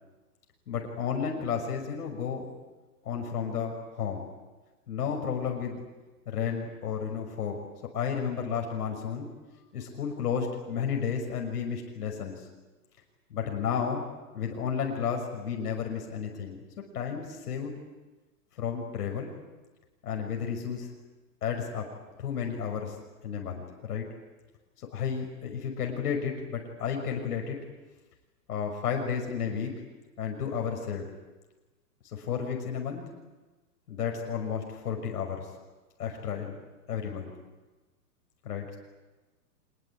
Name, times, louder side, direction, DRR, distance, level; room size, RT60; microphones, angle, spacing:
voice 1, 0.7-2.5 3.0-4.3 4.9-5.8 6.3-7.6 7.9-9.3 9.7-12.5 13.3-14.0 14.3-16.6 16.9-17.7 18.6-19.3 20.0-20.9 21.4-21.8 22.2-23.0 23.2-24.0 24.8-27.6 28.5-29.7 30.2-31.1 32.1-33.0 33.9-35.5 36.0-36.6 36.9-37.3 38.4-38.8, left 7 dB, 70° left, 2 dB, 6.1 m, -32 dB
26.0 x 21.5 x 8.8 m, 1.2 s
hypercardioid pair, 140°, 48 cm